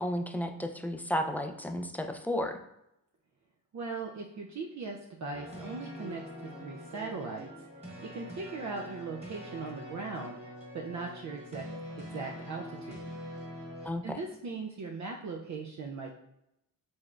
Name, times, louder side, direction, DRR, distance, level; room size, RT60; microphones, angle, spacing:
voice 1, 0.0-2.6 13.8-14.2, equal, 5° left, 5 dB, 0.4 m, -33 dB
voice 2, 3.7-7.5 8.0-10.4 10.7-11.6 12.0-13.1 14.0-16.1, right 4 dB, 55° right, 1 dB, 0.5 m, -39 dB
sound 1, 5.3-13.9, equal, 20° right, 1.4 m, -44 dB
4.0 x 3.2 x 2.4 m, 0.84 s
cardioid pair, 65°, 35 cm